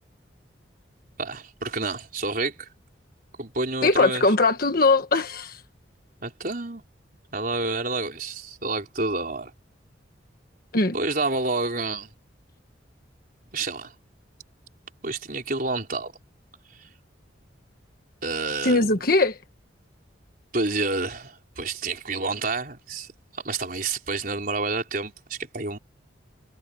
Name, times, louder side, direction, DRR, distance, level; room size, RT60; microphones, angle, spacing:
voice 1, 1.2-2.7 3.4-4.3 6.2-6.8 7.3-9.5 10.9-12.1 13.5-13.9 15.0-16.1 16.8-16.9 18.2-19.0 20.5-25.8, right 3 dB, 50° right, 4.8 m, -29 dB
voice 2, 3.8-5.6 10.7-11.0 18.6-19.4, left 3 dB, 50° left, 1.4 m, -20 dB
head